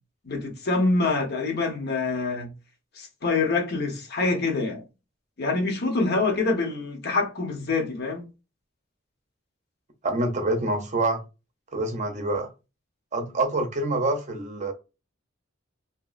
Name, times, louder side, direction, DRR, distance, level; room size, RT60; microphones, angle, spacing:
voice 1, 0.2-2.5 2.9-4.8 5.4-8.2, left 3 dB, 55° left, 0.9 m, -25 dB
voice 2, 10.0-11.2 11.7-12.5 13.1-14.7, right 2 dB, 40° right, 0.6 m, -26 dB
2.9 x 2.7 x 2.4 m
head